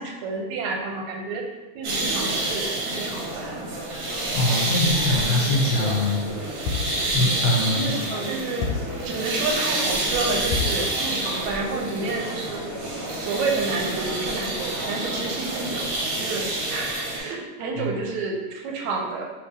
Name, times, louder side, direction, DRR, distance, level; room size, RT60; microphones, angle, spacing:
voice 1, 0.0-1.4 1.8-3.6 7.7-8.7 9.0-12.6 13.1-15.9 16.1-19.3, right 3 dB, 85° right, 1 dB, 1.9 m, -30 dB
sound 1, 1.8-17.2, right 2 dB, 65° right, 1.7 m, -28 dB
voice 2, 4.3-6.2 7.1-7.9 17.8-17.9, left 2 dB, 70° left, -3 dB, 1.9 m, -23 dB
sound 2, 6.7-7.1 8.6-9.0 10.5-10.9, left 5 dB, 90° left, 2.0 m, -28 dB
4.2 x 3.3 x 3.3 m, 1.2 s
omnidirectional pair, 3.3 m